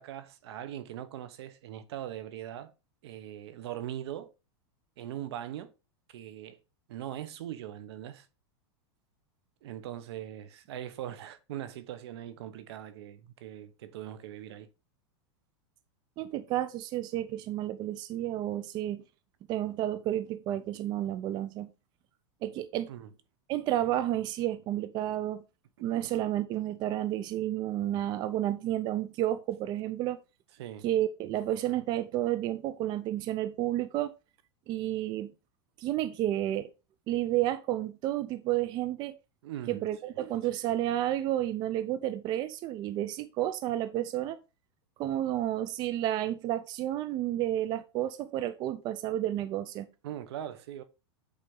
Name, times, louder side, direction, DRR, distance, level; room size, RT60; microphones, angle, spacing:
voice 1, 0.0-2.7 3.0-4.3 5.0-5.7 6.1-6.6 6.9-8.3 9.6-14.7 22.9-23.1 25.9-26.1 30.6-30.9 39.4-39.9 50.0-50.8, right 11 dB, 70° right, 1.0 m, -41 dB
voice 2, 16.2-19.0 19.5-21.7 22.4-22.9 23.5-25.4 25.8-30.2 30.8-34.1 34.7-35.3 35.8-36.7 37.1-39.1 39.7-44.4 45.0-49.9, right 13 dB, 30° right, 0.5 m, -31 dB
8.3 x 4.1 x 3.8 m
supercardioid pair, 145°, 14 cm